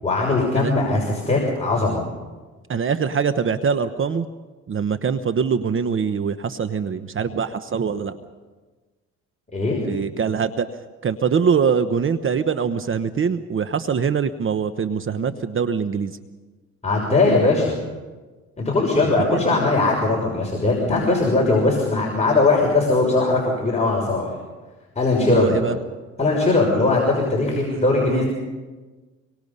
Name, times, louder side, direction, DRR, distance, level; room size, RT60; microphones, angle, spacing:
voice 1, 0.0-2.0 9.5-9.8 16.8-17.8 18.6-24.3 25.0-25.6 26.2-28.3, left 3 dB, 20° left, -3 dB, 6.0 m, -20 dB
voice 2, 2.7-4.3 4.7-8.2 9.9-10.7 11.0-16.2 19.2-19.4 25.2-25.8 27.6-27.8 28.1-28.2, right 6 dB, 45° right, 10 dB, 1.0 m, -23 dB
25.5 x 23.5 x 5.5 m, 1.3 s
cardioid pair, 90°, 30 cm